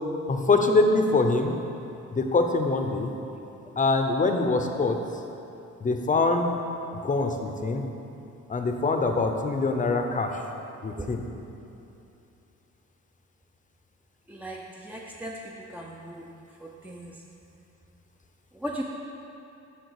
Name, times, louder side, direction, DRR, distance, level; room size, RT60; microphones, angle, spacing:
voice 1, 0.3-1.5 2.1-3.1 3.8-5.0 5.8-6.5 7.0-7.8 8.5-10.3 10.8-11.2, left 3 dB, 25° left, 5 dB, 0.8 m, -24 dB
voice 2, 14.3-15.3 15.7-16.2 16.8-17.1 18.6-18.8, right 1 dB, 5° right, -3 dB, 0.6 m, -36 dB
8.0 x 6.2 x 4.9 m, 2.8 s
cardioid pair, 90°, 30 cm